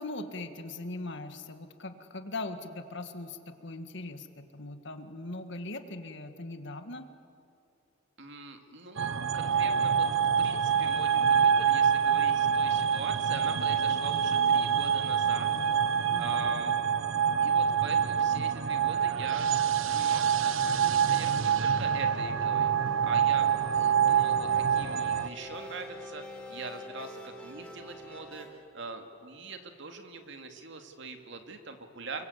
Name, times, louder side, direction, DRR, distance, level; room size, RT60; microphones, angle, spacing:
voice 1, 0.0-7.1 16.1-16.5, left 2 dB, 65° left, 8 dB, 1.9 m, -40 dB
voice 2, 8.2-10.1 10.4-15.5 16.1-16.8 17.4-19.5 19.8-32.3, right 3 dB, 65° right, 5 dB, 2.5 m, -42 dB
sound 1, 9.0-25.3, right 7 dB, 90° right, 1.0 m, -26 dB
sound 2, 22.3-28.5, equal, 5° left, 4.1 m, -45 dB
29.5 x 23.5 x 8.3 m, 2.6 s
head